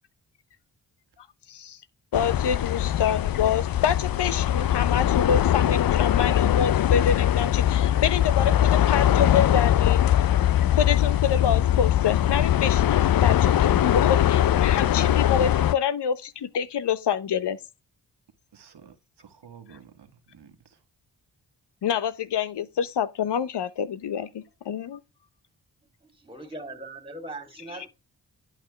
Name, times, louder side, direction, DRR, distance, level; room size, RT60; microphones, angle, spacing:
voice 1, 2.1-10.1 10.7-17.6 21.8-25.0 27.7-27.9, left 8 dB, 75° left, 0.9 m, -27 dB
sound 1, 2.1-15.7, left 11 dB, 55° left, 0.5 m, -21 dB
voice 2, 13.0-14.2 14.6-15.0 18.5-20.1 20.3-20.5, right 7 dB, 75° right, 1.5 m, -49 dB
voice 3, 26.3-27.9, right 2 dB, 15° right, 2.9 m, -39 dB
11.0 x 5.8 x 3.3 m
cardioid pair, 60°, 41 cm